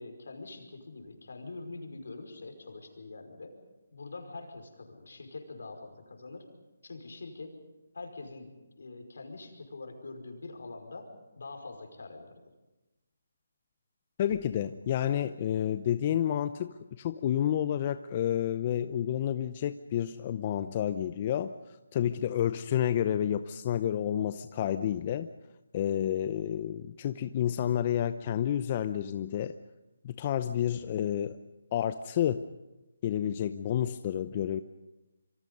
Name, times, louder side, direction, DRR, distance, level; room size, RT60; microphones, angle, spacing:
voice 1, 0.0-3.5 3.9-6.5 6.8-7.6 7.9-8.5 8.8-12.3, left 3 dB, 75° left, 5 dB, 5.3 m, -44 dB
voice 2, 14.2-21.5 21.9-25.3 25.7-29.5 30.0-31.4 31.7-32.4 33.0-34.6, left 10 dB, 35° left, 11 dB, 0.7 m, -30 dB
26.5 x 25.0 x 5.4 m, 1.0 s
figure-of-eight pair, 155°, 0 cm